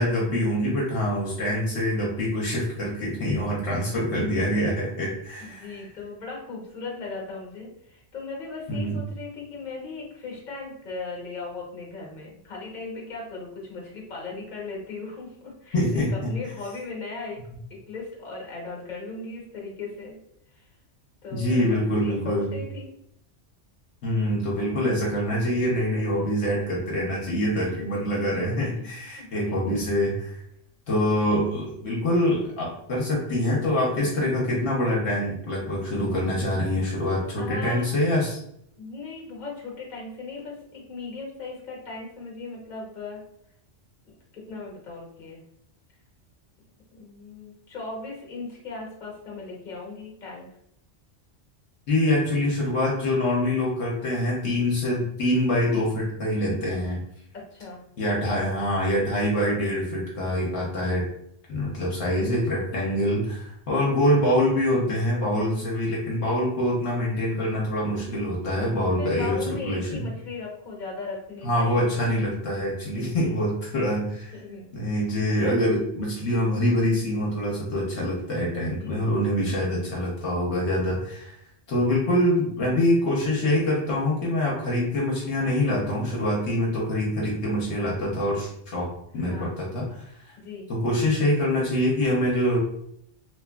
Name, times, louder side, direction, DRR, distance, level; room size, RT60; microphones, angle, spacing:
voice 1, 0.0-5.8 8.7-9.0 15.7-16.3 21.3-22.6 24.0-30.4 30.9-38.4 51.9-57.0 58.0-61.1 61.5-70.0 71.4-74.3 74.7-81.3 81.7-90.1 90.7-92.6, left 1 dB, 70° left, -3 dB, 1.0 m, -25 dB
voice 2, 2.7-3.4 5.4-17.4 17.7-20.2 20.5-20.7 21.2-22.9 26.1-26.5 27.5-27.9 29.0-29.9 37.3-37.9 38.8-43.2 44.0-45.4 46.9-50.5 57.3-57.8 60.8-61.0 67.8-68.4 69.0-71.9 72.9-73.4 74.3-74.7 78.8-79.3 89.1-89.5 90.4-90.7, left 3 dB, 45° left, -2 dB, 0.9 m, -38 dB
2.9 x 2.3 x 2.2 m, 0.72 s
omnidirectional pair, 1.2 m